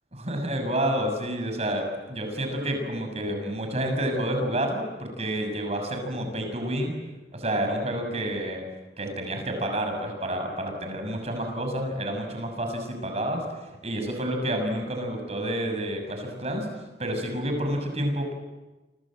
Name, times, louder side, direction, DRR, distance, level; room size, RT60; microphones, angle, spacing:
voice 1, 0.1-6.9 7.3-8.6 9.0-16.7 17.0-18.3, right 1 dB, 35° right, 5 dB, 6.8 m, -29 dB
29.5 x 26.0 x 7.7 m, 1.1 s
head